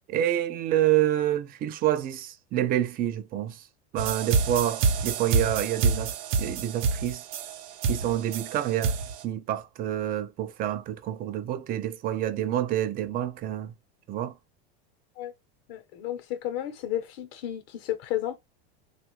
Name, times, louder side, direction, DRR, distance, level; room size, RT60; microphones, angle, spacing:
voice 1, 0.1-3.7 3.9-7.3 7.9-9.0 9.2-13.7 14.1-14.4, right 12 dB, 30° right, 0.4 m, -28 dB
sound 1, 4.0-9.2, right 5 dB, 60° right, 0.7 m, -27 dB
voice 2, 15.7-18.4, left 12 dB, 65° left, 0.9 m, -32 dB
3.3 x 2.4 x 3.0 m
supercardioid pair, 135°, 33 cm